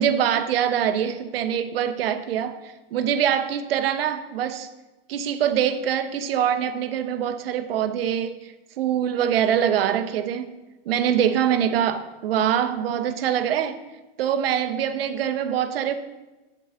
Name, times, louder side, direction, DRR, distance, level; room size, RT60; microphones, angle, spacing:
voice 1, 0.0-4.7 5.1-10.5 10.9-13.8 14.2-15.9, right 9 dB, 80° right, 0.8 m, -24 dB
8.6 x 7.7 x 3.6 m
supercardioid pair, 145°, 29 cm